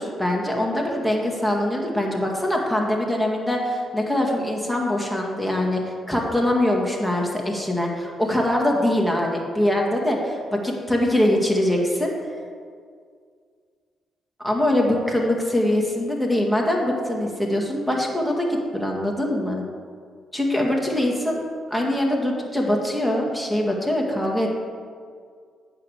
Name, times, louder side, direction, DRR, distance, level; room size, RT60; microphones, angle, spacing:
voice 1, 0.0-12.1 14.4-19.6 20.3-21.4 21.7-24.6, left 1 dB, ahead, -1 dB, 1.9 m, -23 dB
8.3 x 5.1 x 6.4 m, 2.1 s
hypercardioid pair, 50°, 0 cm